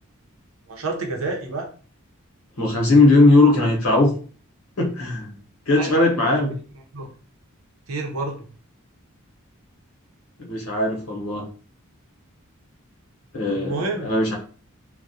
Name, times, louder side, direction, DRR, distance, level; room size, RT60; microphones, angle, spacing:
voice 1, 0.7-1.7 5.8-6.2 6.4-6.6 6.9-7.1 7.9-8.5 13.5-14.2, right 3 dB, 70° right, 2 dB, 0.6 m, -29 dB
voice 2, 2.6-4.1 4.8-5.4 5.7-6.5 10.4-11.4 13.3-14.3, left 2 dB, 85° left, -1 dB, 0.8 m, -18 dB
2.3 x 2.0 x 2.6 m, 0.41 s
head